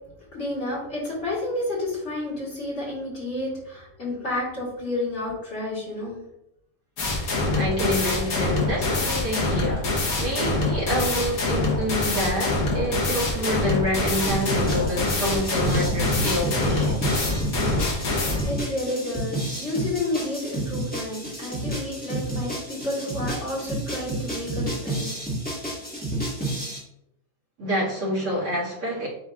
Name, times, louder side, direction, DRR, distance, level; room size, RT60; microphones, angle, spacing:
voice 1, 0.3-6.2 18.4-25.3, left 2 dB, 50° left, -6 dB, 1.9 m, -30 dB
sound 1, 7.0-18.5, left 2 dB, 75° left, 1.4 m, -25 dB
voice 2, 7.5-17.2 27.6-29.1, equal, 75° right, -6 dB, 2.3 m, -27 dB
sound 2, 14.3-26.8, right 1 dB, 5° left, 1.3 m, -30 dB
7.9 x 2.8 x 2.4 m, 0.81 s
omnidirectional pair, 1.5 m